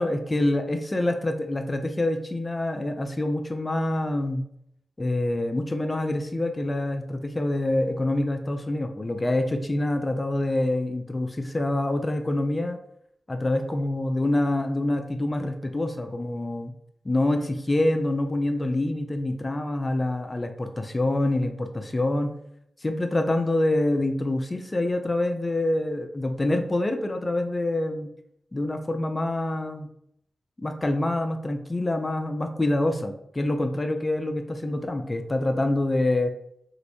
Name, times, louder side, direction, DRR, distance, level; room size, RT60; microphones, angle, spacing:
voice 1, 0.0-4.4 5.0-12.8 13.3-16.7 17.0-22.3 22.8-28.1 28.5-29.9 30.6-36.3, left 1 dB, 30° left, 5 dB, 0.4 m, -26 dB
3.0 x 2.9 x 2.7 m, 0.72 s
supercardioid pair, 40°, 0 cm